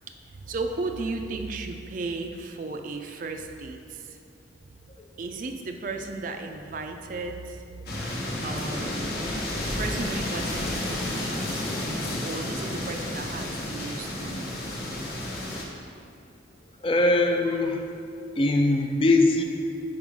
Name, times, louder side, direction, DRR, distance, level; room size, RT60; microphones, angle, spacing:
voice 1, 0.5-4.2 5.2-7.6 8.4-9.2 9.6-11.6 12.2-14.5, right 3 dB, 45° right, 5 dB, 0.4 m, -35 dB
sound 1, 7.9-15.6, left 1 dB, 55° left, 1.0 m, -31 dB
voice 2, 16.8-17.9 18.3-19.4, left 2 dB, 30° left, 4 dB, 0.4 m, -21 dB
5.3 x 4.8 x 4.7 m, 2.5 s
head